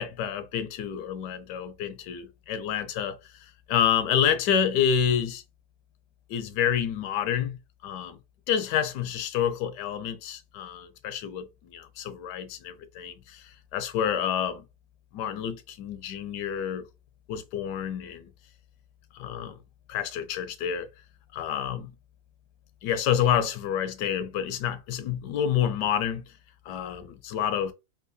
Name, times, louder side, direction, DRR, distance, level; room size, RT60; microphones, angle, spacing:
voice 1, 0.0-5.4 6.3-7.6 7.8-8.2 8.5-14.6 15.1-16.9 17.3-18.3 19.1-19.5 19.9-20.9 21.3-21.9 22.8-26.2 26.7-27.7, left 9 dB, 80° left, 1.1 m, -28 dB
3.6 x 2.6 x 2.6 m
omnidirectional pair, 1.9 m